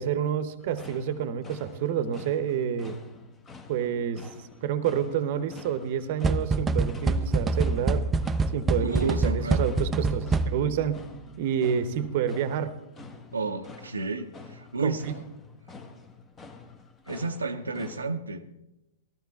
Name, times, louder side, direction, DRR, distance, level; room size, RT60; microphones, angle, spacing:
voice 1, 0.0-3.0 3.7-4.2 4.6-8.1 8.5-11.0 11.4-12.8 14.8-15.1, right 8 dB, 50° right, 13 dB, 0.8 m, -28 dB
sound 1, 0.6-18.1, left 4 dB, 20° left, 1.1 m, -48 dB
sound 2, 6.2-10.8, right 3 dB, 15° right, 0.4 m, -26 dB
voice 2, 8.8-9.6 13.3-15.2 17.1-18.4, right 3 dB, 90° right, 4 dB, 0.6 m, -31 dB
13.5 x 13.5 x 3.5 m, 0.93 s
hypercardioid pair, 115°, 0 cm